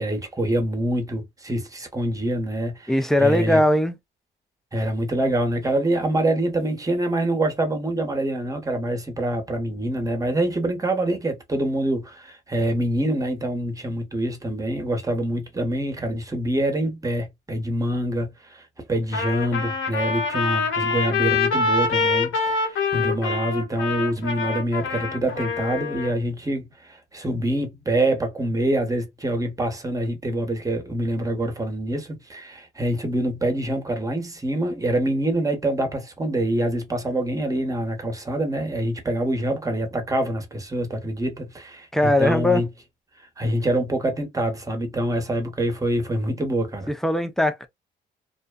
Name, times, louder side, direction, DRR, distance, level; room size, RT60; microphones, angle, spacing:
voice 1, 0.0-2.9 3.2-3.6 4.7-42.7 43.4-46.9, right 1 dB, 15° right, 1.0 m, -25 dB
voice 2, 2.9-4.0 41.9-42.6 46.9-47.7, left 1 dB, ahead, 0.5 m, -20 dB
Trumpet, 19.1-26.1, left 4 dB, 85° left, 1.3 m, -25 dB
2.6 x 2.2 x 2.2 m
cardioid pair, 90°, 20 cm